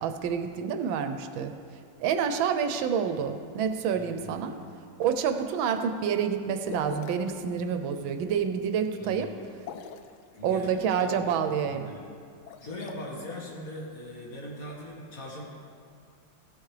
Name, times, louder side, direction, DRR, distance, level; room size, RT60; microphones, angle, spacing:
voice 1, 0.0-1.5 2.0-4.6 5.0-9.3 10.4-11.9, right 7 dB, 80° right, 8 dB, 1.4 m, -28 dB
voice 2, 3.9-4.9 9.0-9.4 10.3-12.1 12.6-15.4, left 1 dB, 45° left, -3 dB, 1.9 m, -41 dB
sound 1, 6.6-7.4 9.5-10.2 12.3-12.9, left 8 dB, 85° left, 1.4 m, -42 dB
15.5 x 8.2 x 3.2 m, 2.2 s
omnidirectional pair, 2.2 m